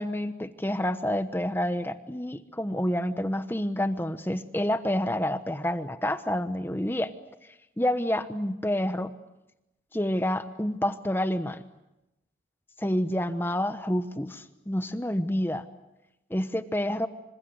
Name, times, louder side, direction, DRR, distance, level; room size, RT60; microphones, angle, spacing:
voice 1, 0.0-7.1 7.8-9.1 9.9-11.6 12.8-15.6 16.3-17.1, left 1 dB, 10° left, 11 dB, 1.0 m, -28 dB
27.0 x 26.5 x 8.1 m, 0.94 s
head